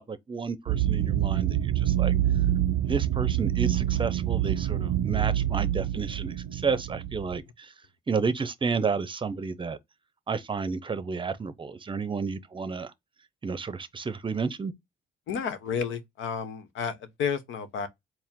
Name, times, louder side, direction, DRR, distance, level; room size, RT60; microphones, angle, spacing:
voice 1, 0.0-2.1 2.8-7.7 8.1-9.8 10.3-12.9 13.4-14.7, right 5 dB, 25° right, 0.6 m, -31 dB
sound 1, 0.7-7.4, right 12 dB, 80° right, 0.5 m, -26 dB
voice 2, 15.3-17.9, left 6 dB, 80° left, 0.9 m, -31 dB
4.5 x 2.0 x 3.6 m
cardioid pair, 90°, 20 cm